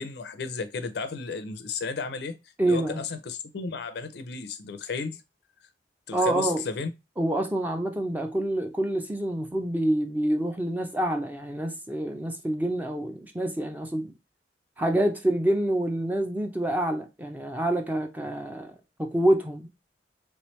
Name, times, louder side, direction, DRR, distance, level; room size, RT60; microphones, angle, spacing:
voice 1, 0.0-2.4 2.7-5.2 6.1-6.9, left 4 dB, 65° left, 0.5 m, -33 dB
voice 2, 2.6-3.0 6.1-6.6 7.2-14.1 14.8-19.7, right 1 dB, 10° right, 0.5 m, -27 dB
3.3 x 3.1 x 3.0 m
head